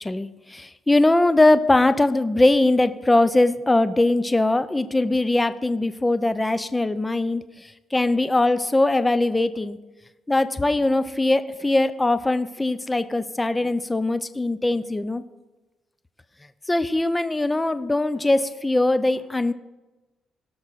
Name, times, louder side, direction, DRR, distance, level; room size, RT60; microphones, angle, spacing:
voice 1, 0.0-9.8 10.3-15.2 16.7-19.5, left 2 dB, 15° left, 13 dB, 0.7 m, -21 dB
18.0 x 6.1 x 4.2 m, 1.1 s
cardioid pair, 90°, 0 cm